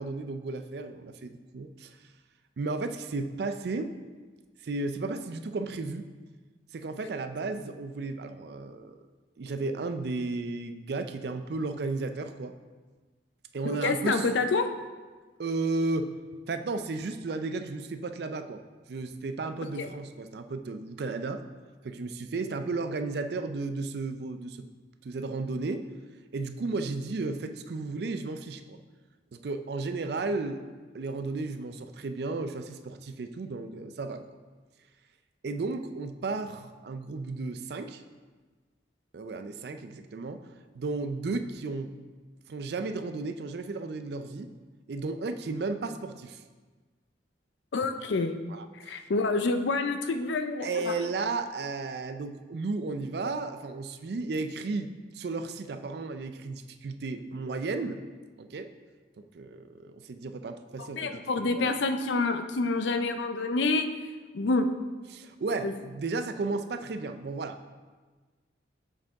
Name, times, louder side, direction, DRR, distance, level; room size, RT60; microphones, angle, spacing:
voice 1, 0.0-2.0 2.6-3.9 4.6-6.0 6.7-8.9 9.4-12.5 13.5-14.3 15.4-16.1 16.5-18.6 18.9-21.4 21.8-24.7 25.0-25.8 26.3-28.8 29.3-30.6 30.9-34.2 35.4-38.0 39.1-40.4 40.7-41.9 42.5-44.5 44.9-46.4 48.5-49.1 50.6-58.0 58.4-58.7 59.2-61.8 65.1-67.6, right 3 dB, 60° right, 9 dB, 0.4 m, -34 dB
voice 2, 13.6-14.7 19.8-19.9 47.7-48.3 48.9-50.9 60.9-63.9 64.3-64.7 65.6-65.7, left 3 dB, 75° left, 8 dB, 0.5 m, -27 dB
7.3 x 5.1 x 3.5 m, 1.3 s
head